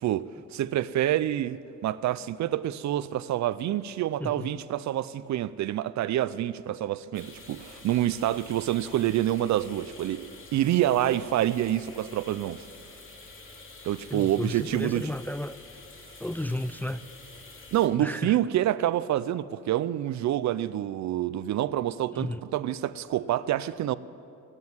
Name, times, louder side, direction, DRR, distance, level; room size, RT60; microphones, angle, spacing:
voice 1, 0.0-12.6 13.8-15.1 17.7-24.0, right 12 dB, 65° right, 0.6 m, -27 dB
sound 1, 7.1-17.9, left 3 dB, 45° left, 2.5 m, -48 dB
voice 2, 14.1-15.6 16.2-17.0 18.0-18.4 22.1-22.4, left 1 dB, 5° left, 0.4 m, -33 dB
15.5 x 9.7 x 9.4 m
cardioid pair, 90°, 30 cm